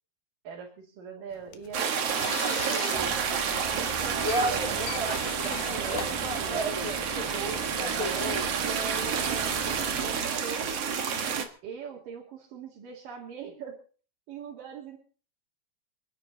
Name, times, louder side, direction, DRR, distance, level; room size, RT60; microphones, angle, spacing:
voice 1, 0.4-3.1 3.7-6.7 7.3-9.7 10.0-11.0 11.6-13.8 14.3-15.0, right 6 dB, 90° right, -1 dB, 4.3 m, -41 dB
sound 1, 1.3-7.0, left 9 dB, 90° left, 3.0 m, -41 dB
sound 2, 1.7-11.5, right 7 dB, 55° right, 2.5 m, -30 dB
sound 3, 2.9-10.1, right 1 dB, 20° right, 1.0 m, -35 dB
28.5 x 10.5 x 4.1 m, 0.39 s
omnidirectional pair, 3.7 m